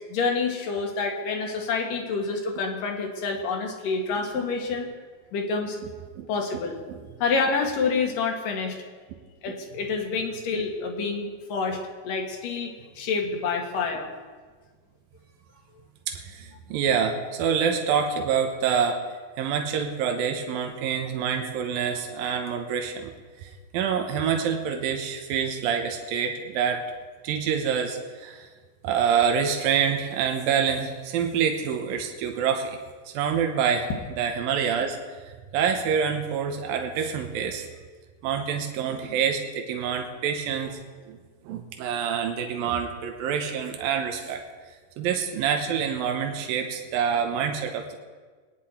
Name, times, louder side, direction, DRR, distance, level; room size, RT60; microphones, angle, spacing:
voice 1, 0.0-4.9 5.3-5.8 6.3-6.8 7.2-8.8 9.4-11.8 12.0-14.1, left 4 dB, 70° left, 2 dB, 3.2 m, -28 dB
voice 2, 16.1-19.0 19.4-23.1 23.4-26.8 27.2-28.5 28.8-32.8 33.1-33.9 34.2-35.0 35.5-37.7 38.2-40.8 41.1-41.2 41.5-44.4 45.0-48.0, right 7 dB, 85° right, 4 dB, 2.8 m, -26 dB
23.0 x 9.9 x 4.3 m, 1.5 s
omnidirectional pair, 4.1 m